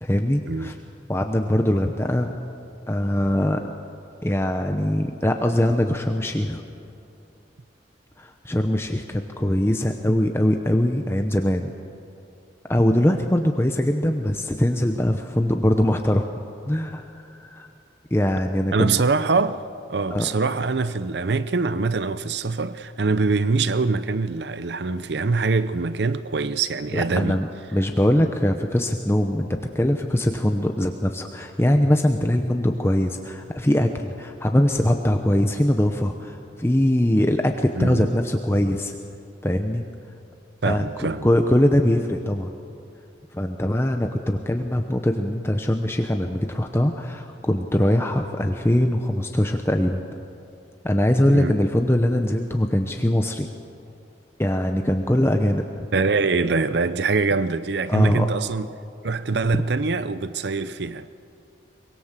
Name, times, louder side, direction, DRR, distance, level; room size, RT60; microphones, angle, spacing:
voice 1, 0.0-0.8 1.1-2.4 2.9-3.7 4.2-6.6 8.2-11.7 12.7-16.3 16.7-17.7 18.1-19.0 20.1-20.3 26.9-29.5 29.7-38.9 39.4-39.8 40.6-42.5 43.3-50.0 50.8-53.5 54.4-55.9 57.9-58.3, left 1 dB, 15° left, 0.8 m, -22 dB
voice 2, 18.7-19.6 19.9-27.4 37.8-38.1 40.6-41.3 51.2-51.6 55.9-58.7 59.0-61.1, right 4 dB, 65° right, 0.6 m, -23 dB
23.5 x 21.5 x 7.5 m
head